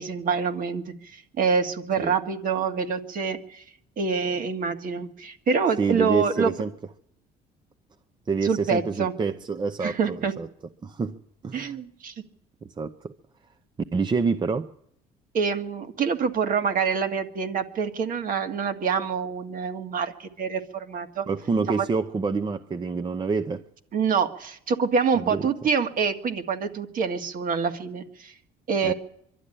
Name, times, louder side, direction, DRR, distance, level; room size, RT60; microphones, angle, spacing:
voice 1, 0.0-3.6 4.0-6.5 8.4-9.1 9.8-10.3 11.5-12.1 15.3-21.3 21.7-21.9 23.9-28.3 28.7-28.9, right 5 dB, 55° right, 1.9 m, -26 dB
voice 2, 5.8-6.7 8.3-10.5 10.8-11.8 12.8-13.1 13.9-14.7 21.3-23.6 25.1-25.5 28.8-28.9, right 4 dB, 25° right, 0.8 m, -27 dB
23.5 x 12.0 x 9.9 m
cardioid pair, 110°, 17 cm